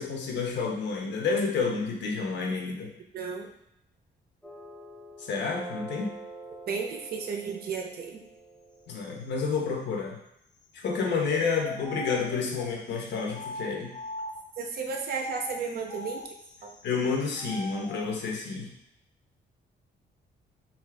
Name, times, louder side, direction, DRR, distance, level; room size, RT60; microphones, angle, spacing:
voice 1, 0.0-2.9 5.3-6.1 8.9-10.2 10.7-13.9 16.8-18.7, left 5 dB, 70° left, 1 dB, 0.6 m, -29 dB
voice 2, 3.1-3.5 6.7-8.2 14.6-16.2 16.6-16.7, right 5 dB, 55° right, 2 dB, 0.5 m, -33 dB
sound 1, 4.4-9.5, right 2 dB, 5° left, 0.7 m, -46 dB
sound 2, 11.2-14.6 15.2-18.1, left 2 dB, 25° left, 0.3 m, -41 dB
2.6 x 2.4 x 3.3 m, 0.79 s
cardioid pair, 125°, 19 cm